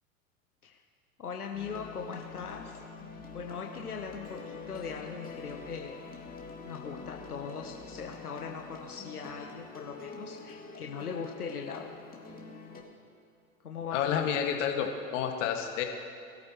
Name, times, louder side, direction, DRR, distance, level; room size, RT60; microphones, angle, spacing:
voice 1, 1.2-2.8 3.3-6.0 6.6-11.9 13.6-14.3, left 6 dB, 90° left, 1 dB, 1.2 m, -40 dB
sound 1, 1.5-12.8, left 4 dB, 20° left, 2.4 m, -46 dB
voice 2, 13.9-15.8, left 8 dB, 55° left, 3 dB, 2.0 m, -30 dB
23.0 x 13.0 x 3.1 m, 2.5 s
hypercardioid pair, 95°, 44 cm